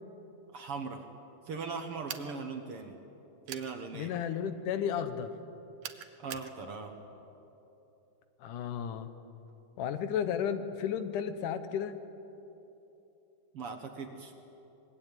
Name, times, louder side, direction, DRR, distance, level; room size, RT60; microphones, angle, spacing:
voice 1, 0.5-1.1 1.5-3.0 3.5-4.1 6.2-6.9 13.5-14.3, right 4 dB, 55° right, 5 dB, 2.0 m, -39 dB
sound 1, 2.1-2.4 3.5-3.7 5.8-6.5, right 11 dB, 85° right, 2.6 m, -42 dB
voice 2, 3.9-5.3 8.4-9.1 9.8-12.0, left 8 dB, 75° left, 10 dB, 2.5 m, -33 dB
25.0 x 20.5 x 9.2 m, 3.0 s
omnidirectional pair, 3.7 m